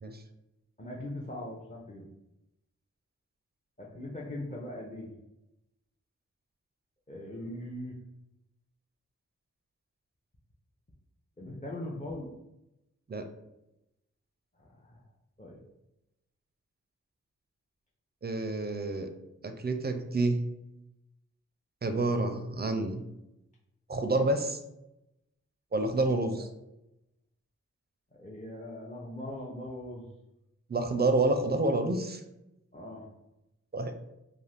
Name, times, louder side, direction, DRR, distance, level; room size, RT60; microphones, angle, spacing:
voice 1, 0.8-2.0 3.8-5.1 7.1-8.0 11.4-12.3 14.6-15.0 15.4-15.6 28.2-30.1 32.7-33.1, left 1 dB, 25° left, -4 dB, 0.5 m, -40 dB
voice 2, 18.2-19.1 19.4-20.4 21.8-23.0 23.9-24.6 25.7-26.5 30.7-32.2 33.7-33.9, right 2 dB, 35° right, 6 dB, 0.4 m, -28 dB
2.4 x 2.4 x 3.3 m, 0.90 s
cardioid pair, 45°, 31 cm